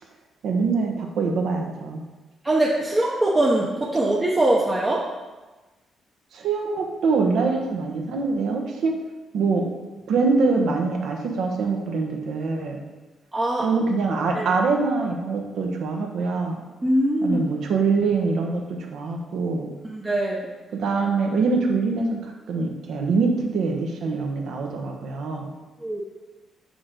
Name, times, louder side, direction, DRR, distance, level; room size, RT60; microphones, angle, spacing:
voice 1, 0.4-2.0 6.3-8.9 9.3-9.7 10.1-12.8 13.6-16.6 17.2-18.6 18.9-19.7 20.7-25.5, right 4 dB, 75° right, 1 dB, 1.2 m, -24 dB
voice 2, 2.4-5.0 13.3-13.7 14.3-14.5 16.8-17.4 19.8-20.5 25.8-26.0, right 1 dB, 15° right, -4 dB, 0.7 m, -22 dB
6.9 x 6.6 x 3.9 m, 1.2 s
cardioid pair, 150°, 0 cm